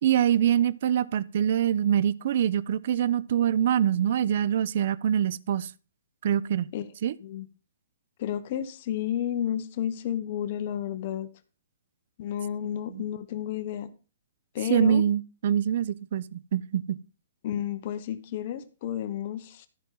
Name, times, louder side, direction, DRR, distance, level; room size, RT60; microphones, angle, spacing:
voice 1, 0.0-5.7 6.2-6.7 7.0-7.1 12.9-13.0 14.7-17.0, right 9 dB, 55° right, 0.5 m, -24 dB
voice 2, 8.2-11.3 12.2-13.9 14.5-15.0 17.4-19.7, left 10 dB, 45° left, 0.9 m, -31 dB
14.0 x 5.6 x 3.8 m
hypercardioid pair, 150°, 0 cm